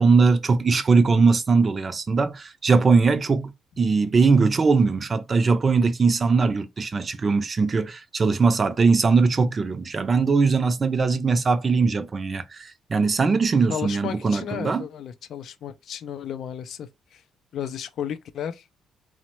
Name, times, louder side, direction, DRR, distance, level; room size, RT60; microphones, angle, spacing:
voice 1, 0.0-14.8, right 4 dB, 35° right, 0.4 m, -20 dB
voice 2, 13.7-17.2 17.5-18.6, left 9 dB, 70° left, 0.4 m, -33 dB
3.0 x 2.1 x 3.0 m
cardioid pair, 90°, 0 cm